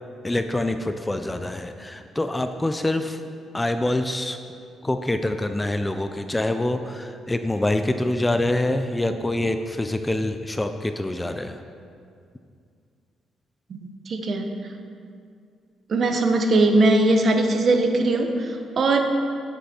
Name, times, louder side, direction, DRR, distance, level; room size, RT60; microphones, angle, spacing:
voice 1, 0.2-3.2 3.5-4.4 4.8-11.6, left 1 dB, 15° left, 8 dB, 0.4 m, -25 dB
voice 2, 13.7-14.5 15.9-19.0, right 2 dB, 50° right, 5 dB, 0.9 m, -20 dB
8.3 x 7.9 x 4.4 m, 2.3 s
cardioid pair, 90°, 0 cm